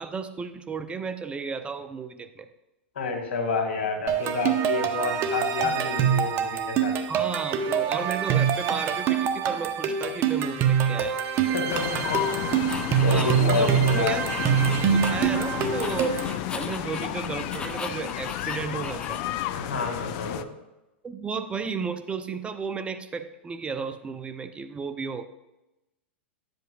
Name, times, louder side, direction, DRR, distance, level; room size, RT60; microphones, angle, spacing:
voice 1, 0.0-2.5 7.1-11.2 13.1-14.3 14.7-16.2 16.5-19.2 21.0-25.2, right 5 dB, 15° right, 10 dB, 0.4 m, -33 dB
voice 2, 3.0-6.9 11.4-12.7 13.0-14.4 19.4-20.5, left 4 dB, 75° left, 4 dB, 2.0 m, -29 dB
sound 1, 4.1-16.4, right 8 dB, 40° right, 0.8 m, -25 dB
sound 2, 11.7-20.4, left 12 dB, 50° left, 0.4 m, -32 dB
sound 3, 12.7-15.4 15.7-19.5, left 4 dB, 15° left, 0.7 m, -38 dB
10.5 x 7.8 x 2.3 m, 0.96 s
hypercardioid pair, 110°, 6 cm